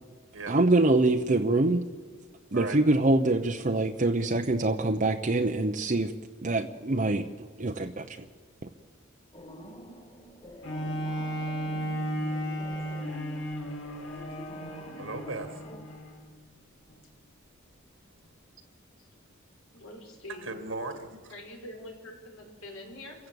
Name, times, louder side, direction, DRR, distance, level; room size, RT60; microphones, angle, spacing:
voice 1, 0.5-1.8 2.5-6.1 6.4-7.3 7.6-8.2, right 2 dB, 40° right, 4 dB, 0.8 m, -24 dB
sound 1, 9.3-15.8, equal, 30° left, 2.8 m, -47 dB
Bowed string instrument, 10.6-16.3 16.9-17.0, equal, 65° left, 2.8 m, -34 dB
voice 2, 15.0-15.6 20.4-21.3, right 3 dB, 70° right, 7 dB, 1.9 m, -37 dB
voice 3, 19.7-20.6 21.3-23.3, left 1 dB, 85° left, 1 dB, 5.6 m, -44 dB
27.5 x 16.0 x 8.0 m, 1.5 s
head